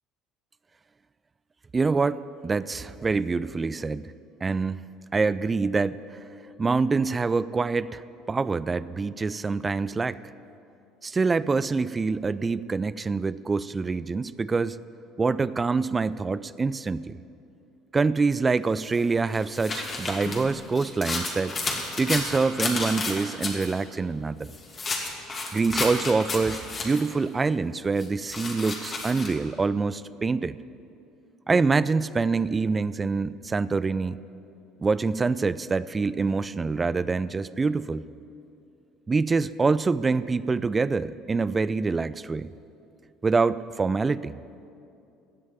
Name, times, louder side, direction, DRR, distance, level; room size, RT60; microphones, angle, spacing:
voice 1, 1.7-4.1 4.4-4.8 5.1-6.0 6.6-8.0 8.3-10.2 11.0-14.8 15.2-17.2 17.9-21.6 22.0-24.5 25.5-30.6 31.5-34.2 34.8-38.1 39.1-42.5 43.2-44.3, right 4 dB, 25° right, 17 dB, 0.4 m, -25 dB
sound 1, 18.8-23.7 24.4-27.1 28.0-29.3, left 3 dB, 35° left, 2.6 m, -32 dB
16.0 x 6.3 x 9.4 m, 2.6 s
hypercardioid pair, 65°, 0 cm